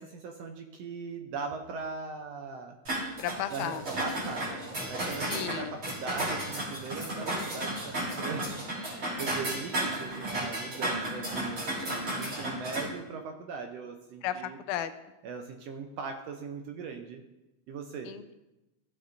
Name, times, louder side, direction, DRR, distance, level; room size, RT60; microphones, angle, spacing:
voice 1, 0.0-2.8 3.5-3.7 4.0-4.5 4.9-14.6 15.2-17.2 17.7-18.1, right 5 dB, 75° right, 4 dB, 1.6 m, -40 dB
sound 1, 2.9-12.9, right 1 dB, 40° right, 3.9 m, -34 dB
voice 2, 3.2-3.8 5.3-5.8 14.2-14.9 18.0-18.3, left 10 dB, 85° left, 10 dB, 2.0 m, -34 dB
15.0 x 7.9 x 2.6 m, 0.99 s
omnidirectional pair, 3.4 m